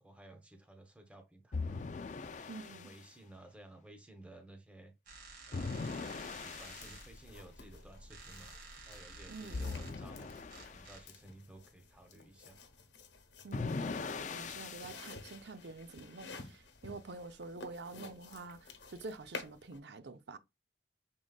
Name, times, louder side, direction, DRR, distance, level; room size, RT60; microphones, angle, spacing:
voice 1, 0.0-1.8 2.4-4.9 5.5-5.8 6.0-8.6 8.9-12.6, right 1 dB, 5° right, 0.8 m, -56 dB
sound 1, 1.5-3.0 5.5-7.0 9.5-10.9 13.5-15.1, left 4 dB, 40° left, 0.4 m, -40 dB
voice 2, 2.5-2.9 9.3-9.6 13.4-20.4, right 3 dB, 70° right, 0.6 m, -47 dB
sound 2, 5.1-11.0, right 3 dB, 50° right, 1.9 m, -53 dB
sound 3, 6.8-19.8, left 3 dB, 80° left, 1.0 m, -52 dB
6.1 x 3.8 x 2.3 m
head